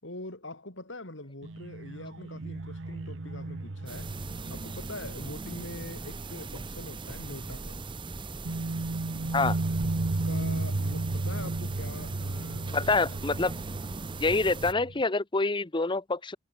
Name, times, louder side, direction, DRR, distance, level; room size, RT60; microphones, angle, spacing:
voice 1, 0.0-4.1 4.5-7.8 10.1-13.2, left 2 dB, 75° left, 4.7 m, -43 dB
abduction bass, 1.4-6.8 7.1-7.3 8.4-15.0, right 2 dB, 85° right, 1.0 m, -34 dB
sound 1, 3.9-14.7, right 3 dB, 25° right, 0.7 m, -40 dB
voice 2, 12.7-13.5 14.2-16.4, left 3 dB, 25° left, 0.9 m, -26 dB
head